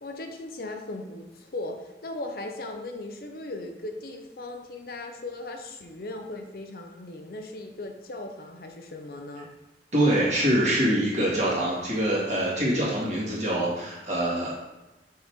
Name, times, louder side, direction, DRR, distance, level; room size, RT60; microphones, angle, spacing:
voice 1, 0.0-9.5, left 2 dB, 55° left, 4 dB, 0.6 m, -38 dB
voice 2, 9.9-14.6, right 1 dB, 40° right, -6 dB, 1.9 m, -24 dB
6.4 x 4.6 x 3.6 m, 1.0 s
head